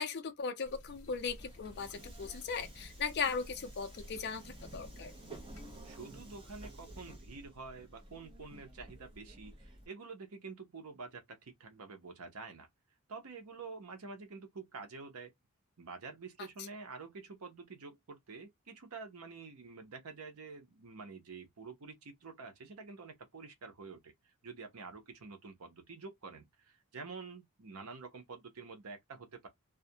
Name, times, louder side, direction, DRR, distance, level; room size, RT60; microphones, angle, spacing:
voice 1, 0.0-5.1, left 5 dB, 50° left, 0.4 m, -38 dB
sound 1, 0.6-5.8, left 1 dB, 80° left, 0.8 m, -54 dB
Subway metro underground, 1.1-9.9, right 1 dB, 25° right, 0.6 m, -52 dB
voice 2, 5.8-12.7 13.1-15.3 15.8-24.1 24.4-29.5, right 4 dB, 80° right, 0.7 m, -48 dB
2.3 x 2.1 x 2.6 m
head